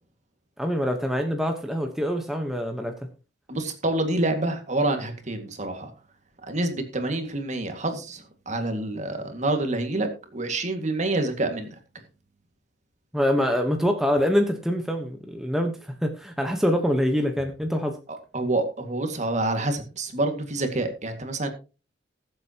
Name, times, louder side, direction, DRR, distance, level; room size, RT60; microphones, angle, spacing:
voice 1, 0.6-2.9 13.1-18.0, equal, ahead, 3 dB, 1.1 m, -25 dB
voice 2, 3.5-5.9 6.5-11.8 18.3-21.5, right 2 dB, 40° right, 6 dB, 2.0 m, -27 dB
20.5 x 7.8 x 2.9 m, 0.32 s
head